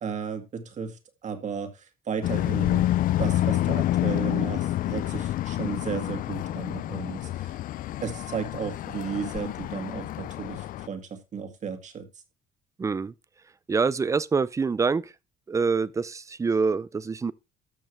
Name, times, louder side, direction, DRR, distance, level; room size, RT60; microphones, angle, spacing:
voice 1, 0.0-2.9 3.2-7.6 8.0-12.1, right 6 dB, 45° right, 2.1 m, -34 dB
sound 1, 2.2-10.9, left 13 dB, 55° left, 0.4 m, -28 dB
voice 2, 12.8-13.1 13.7-15.1 15.5-17.3, right 4 dB, 20° right, 0.4 m, -25 dB
13.5 x 6.3 x 3.3 m
cardioid pair, 110°, 17 cm